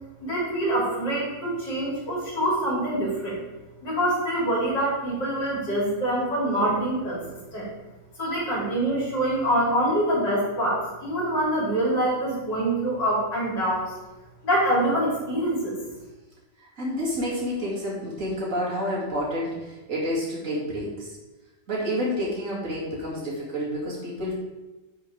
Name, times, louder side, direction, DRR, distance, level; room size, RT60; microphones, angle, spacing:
voice 1, 0.2-3.4 3.8-7.2 7.5-7.7 8.2-13.9 14.4-15.8, right 1 dB, 75° left, -6 dB, 4.0 m, -25 dB
voice 2, 16.6-21.2 21.7-24.3, equal, 45° right, -5 dB, 2.8 m, -29 dB
11.0 x 5.5 x 3.5 m, 1.1 s
omnidirectional pair, 1.9 m